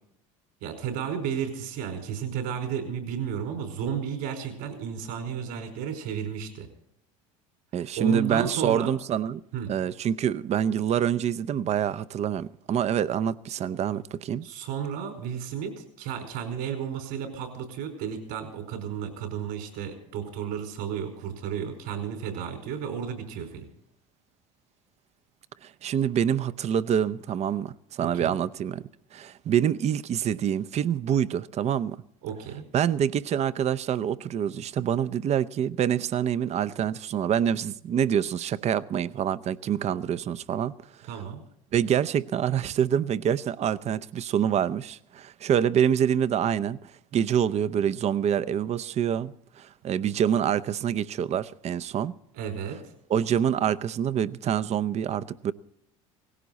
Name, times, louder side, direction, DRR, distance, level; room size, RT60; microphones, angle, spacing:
voice 1, 0.6-6.7 8.0-8.9 9.5-9.7 14.4-23.7 28.0-28.4 32.2-32.6 41.1-41.4 52.3-52.8, right 8 dB, 65° right, 4.7 m, -33 dB
voice 2, 7.7-9.4 9.7-14.4 25.6-28.8 29.1-32.0 32.7-40.7 41.7-52.1 53.1-55.5, right 9 dB, 40° right, 0.7 m, -26 dB
18.0 x 16.0 x 4.1 m
hypercardioid pair, 80°, 17 cm